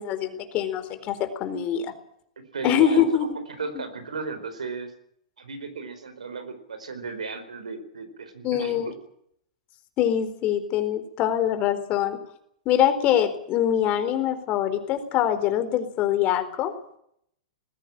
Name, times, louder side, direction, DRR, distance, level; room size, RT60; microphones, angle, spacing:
voice 1, 0.0-1.9 2.6-3.3 3.7-3.8 8.4-8.9 10.0-12.2 12.7-16.7, left 10 dB, 40° left, 9 dB, 4.2 m, -24 dB
voice 2, 2.5-4.9 5.4-8.9, right 4 dB, 85° right, 10 dB, 4.5 m, -35 dB
20.0 x 16.5 x 9.0 m, 0.69 s
hypercardioid pair, 105°, 4 cm